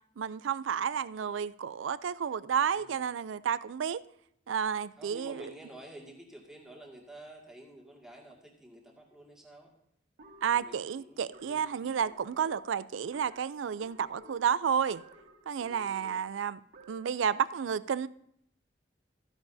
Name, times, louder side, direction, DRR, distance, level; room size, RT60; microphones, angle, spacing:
voice 1, 0.2-4.0 4.5-5.4 10.4-15.0 15.5-16.6 16.9-18.1, right 7 dB, 85° right, 0.4 m, -31 dB
voice 2, 2.7-3.0 5.0-9.7 10.5-11.6 15.6-16.1, right 1 dB, 5° right, 2.0 m, -50 dB
sound 1, 10.2-17.2, right 2 dB, 60° right, 1.7 m, -54 dB
14.5 x 10.5 x 2.7 m
head